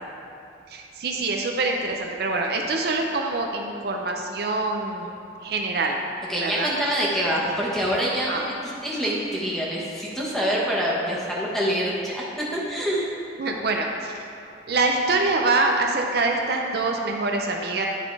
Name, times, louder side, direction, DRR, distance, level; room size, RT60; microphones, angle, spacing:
voice 1, 0.7-5.1 5.4-6.0 6.4-6.7 8.3-8.5 13.4-14.1 14.7-17.9, right 3 dB, 60° right, 2 dB, 0.6 m, -25 dB
voice 2, 6.3-13.1, equal, ahead, -6 dB, 1.3 m, -26 dB
11.0 x 4.0 x 4.7 m, 2.6 s
head